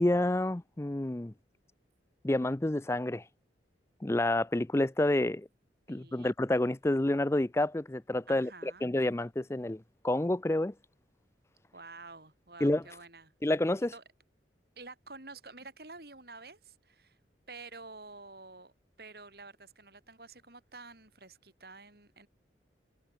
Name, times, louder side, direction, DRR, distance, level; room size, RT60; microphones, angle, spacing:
voice 1, 0.0-1.3 2.2-3.2 4.0-5.5 5.9-10.7 12.6-12.8 13.4-13.9, left 1 dB, 15° left, 0.4 m, -29 dB
voice 2, 5.9-6.3 8.3-8.9 11.7-13.3 13.9-14.0 14.8-17.2 17.5-18.7 19.0-22.3, right 3 dB, 60° right, 5.5 m, -49 dB
head